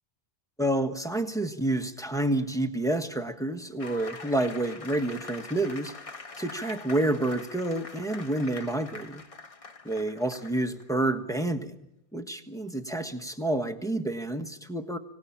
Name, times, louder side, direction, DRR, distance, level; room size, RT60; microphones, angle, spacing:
voice 1, 0.6-5.9 6.4-9.2 9.8-11.8 12.1-15.0, right 1 dB, 5° left, 4 dB, 1.3 m, -29 dB
sound 1, 3.8-10.9, left 3 dB, 35° left, 1.1 m, -44 dB
25.5 x 18.0 x 8.7 m, 0.82 s
omnidirectional pair, 1.1 m